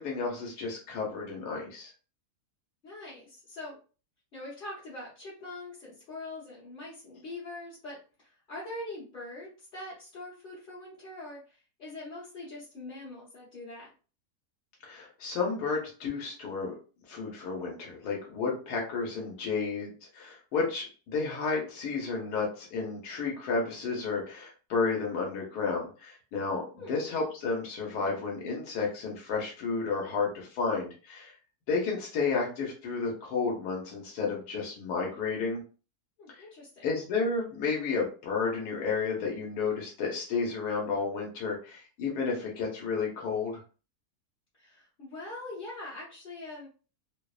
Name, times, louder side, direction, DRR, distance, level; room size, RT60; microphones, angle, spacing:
voice 1, 0.0-1.9 14.8-16.7 17.1-31.3 31.7-35.6 36.3-36.4 36.8-43.6, left 4 dB, 85° left, -1 dB, 1.3 m, -32 dB
voice 2, 2.8-3.8 4.3-13.9 26.8-27.0 36.2-36.9 44.5-46.7, left 2 dB, 40° left, -9 dB, 0.9 m, -43 dB
2.8 x 2.0 x 2.3 m, 0.36 s
omnidirectional pair, 1.6 m